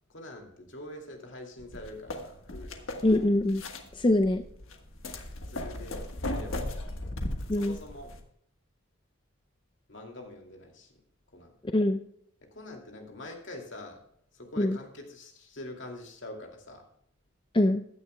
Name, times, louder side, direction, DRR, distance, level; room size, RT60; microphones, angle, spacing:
voice 1, 0.1-2.8 5.4-6.0 6.3-7.1 7.5-8.1 9.9-10.9 11.3-11.5 12.5-14.0 14.3-16.9, left 1 dB, 65° left, 2 dB, 2.5 m, -44 dB
sound 1, 1.6-8.2, left 1 dB, 85° left, 1.4 m, -37 dB
voice 2, 3.0-3.6 4.0-4.4 7.5-7.8 11.7-12.0 14.6-14.8 17.5-17.8, left 1 dB, 25° left, 7 dB, 0.4 m, -23 dB
15.5 x 10.5 x 2.2 m, 0.70 s
head